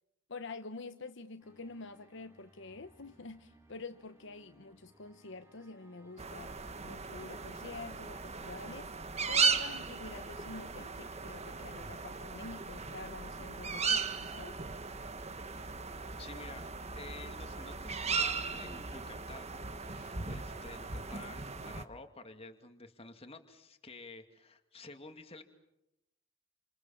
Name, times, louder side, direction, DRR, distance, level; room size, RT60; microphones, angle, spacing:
voice 1, 0.3-6.6 6.8-14.6, left 3 dB, 65° left, 1.1 m, -47 dB
sound 1, 1.4-7.4, right 1 dB, 15° right, 5.3 m, -64 dB
sound 2, 6.2-21.8, right 5 dB, 35° right, 1.4 m, -37 dB
voice 2, 16.2-16.6 16.9-19.5 19.8-25.4, left 3 dB, 30° left, 2.4 m, -50 dB
29.5 x 27.5 x 7.3 m
head